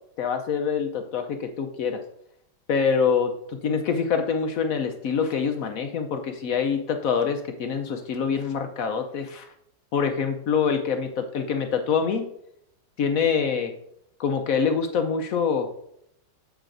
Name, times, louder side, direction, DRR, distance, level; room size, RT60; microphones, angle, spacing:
voice 1, 0.2-2.0 2.7-9.5 9.9-12.3 13.0-13.7 14.2-15.7, left 6 dB, 65° left, 6 dB, 0.9 m, -25 dB
8.0 x 7.4 x 2.5 m, 0.72 s
omnidirectional pair, 1.9 m